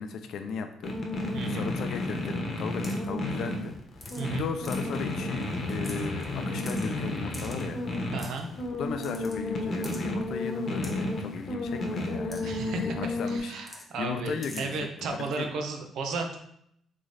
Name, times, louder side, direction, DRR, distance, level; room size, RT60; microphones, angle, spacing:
voice 1, 0.0-3.7 4.1-7.8 8.8-14.7 15.0-15.5, left 6 dB, 75° left, 7 dB, 0.5 m, -37 dB
sound 1, 0.8-13.4, left 2 dB, 50° left, 0.9 m, -32 dB
voice 2, 1.3-1.7 4.2-4.5 8.1-8.5 12.4-12.9 13.2-16.4, right 3 dB, 75° right, 4 dB, 0.7 m, -34 dB
sound 2, 2.8-3.1 4.0-4.3 4.7-5.0 5.4-5.5 5.7-6.2 6.6-6.9 7.3-7.6 8.2-8.4 9.0-9.4 9.8-10.0 10.8-10.9 12.3-12.4 12.7-12.8 13.6-13.9 14.4-14.6, left 1 dB, 15° left, 1.0 m, -43 dB
3.7 x 3.3 x 3.9 m, 0.72 s
cardioid pair, 90°, 0 cm